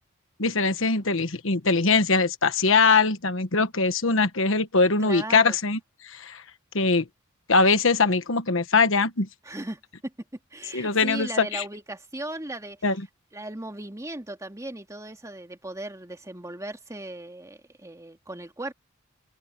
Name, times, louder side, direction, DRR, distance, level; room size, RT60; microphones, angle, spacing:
voice 1, 0.4-6.4 6.7-7.1 7.5-9.3 10.7-11.6 12.8-13.0, left 4 dB, 70° left, 1.4 m, -22 dB
voice 2, 5.0-5.6 9.4-10.1 10.5-12.8 13.3-18.7, right 1 dB, 15° right, 2.2 m, -37 dB
head